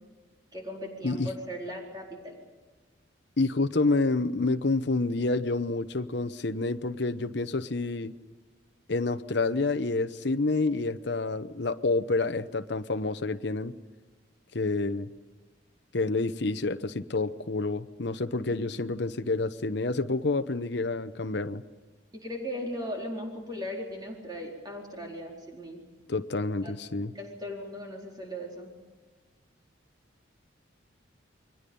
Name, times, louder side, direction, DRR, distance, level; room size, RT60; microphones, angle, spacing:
voice 1, 0.5-2.4 22.1-25.8 26.6-26.8 27.1-28.7, equal, 20° right, -1 dB, 4.3 m, -38 dB
voice 2, 3.4-8.1 8.9-13.7 14.5-15.1 15.9-21.6 26.1-27.1, left 3 dB, 60° left, 10 dB, 0.9 m, -28 dB
29.5 x 22.5 x 5.4 m, 1.3 s
head